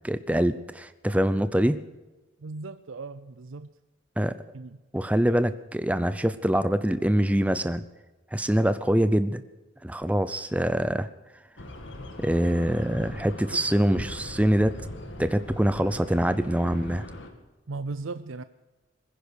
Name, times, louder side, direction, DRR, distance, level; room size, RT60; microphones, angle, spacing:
voice 1, 0.0-1.8 4.2-4.4 4.9-7.8 8.3-9.4 9.8-11.1 12.2-14.8 15.2-17.1, equal, 5° right, 0.5 m, -24 dB
voice 2, 2.4-3.7 4.5-4.8 13.5-13.6 17.7-18.4, right 3 dB, 85° right, 0.6 m, -37 dB
sound 1, 11.6-17.3, left 1 dB, 70° left, 2.3 m, -41 dB
21.5 x 10.5 x 6.4 m
head